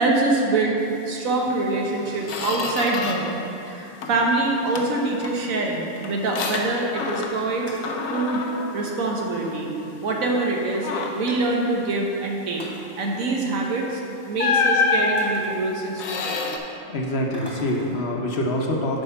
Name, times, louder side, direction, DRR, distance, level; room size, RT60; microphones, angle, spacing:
voice 1, 0.0-3.3 3.7-7.7 8.1-8.4 8.7-9.7 10.0-12.6 13.0-16.5, right 2 dB, 85° right, 0 dB, 1.4 m, -25 dB
Squeak, 1.5-1.6 2.0-3.4 3.7-4.3 4.8-7.6 7.8-9.7 10.1-10.3 10.7-11.4 13.5-13.7 14.4-16.6, left 4 dB, 85° left, 1.1 m, -27 dB
sound 1, 3.3-4.0 4.4-4.5 4.7-4.8 5.2-5.3 5.6-5.7 6.0-6.4 6.8-6.9 7.2-8.0 9.1-9.3 9.6-9.7 10.4-10.5 10.8-11.8 12.4-12.9 14.6-14.7 15.2-16.2 17.3-18.0, left 1 dB, 20° left, 0.9 m, -43 dB
voice 2, 16.9-19.0, left 1 dB, 55° left, 0 dB, 1.0 m, -25 dB
8.5 x 4.6 x 5.6 m, 2.8 s
omnidirectional pair, 1.4 m